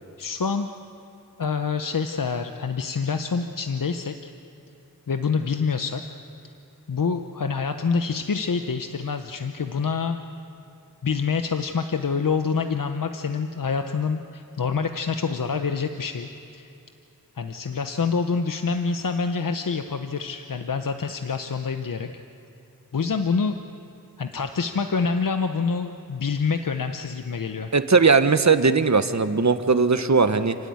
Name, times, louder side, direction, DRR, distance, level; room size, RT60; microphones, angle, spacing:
voice 1, 0.2-0.7 1.4-4.3 5.1-6.0 6.9-10.2 11.0-16.7 17.4-22.1 22.9-23.6 24.2-27.7, left 5 dB, 65° left, 7 dB, 0.9 m, -26 dB
voice 2, 27.7-30.6, right 4 dB, 50° right, 10 dB, 1.1 m, -19 dB
30.0 x 12.5 x 9.5 m, 2.7 s
wide cardioid pair, 60°, 36 cm